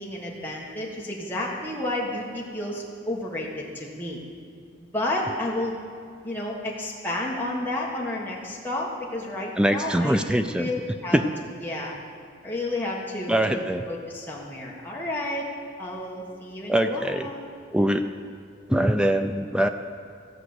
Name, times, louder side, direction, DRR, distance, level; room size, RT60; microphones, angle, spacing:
voice 1, 0.0-4.2 4.9-5.7 6.2-10.2 10.5-11.2 11.6-11.9 12.4-13.6 13.9-15.5 15.8-17.4, left 1 dB, 10° left, -4 dB, 1.5 m, -31 dB
voice 2, 9.6-10.7 11.1-11.2 13.3-13.8 16.7-17.3 17.7-18.0 18.7-19.7, right 1 dB, 5° right, 7 dB, 0.4 m, -22 dB
15.0 x 5.0 x 8.0 m, 2.4 s
head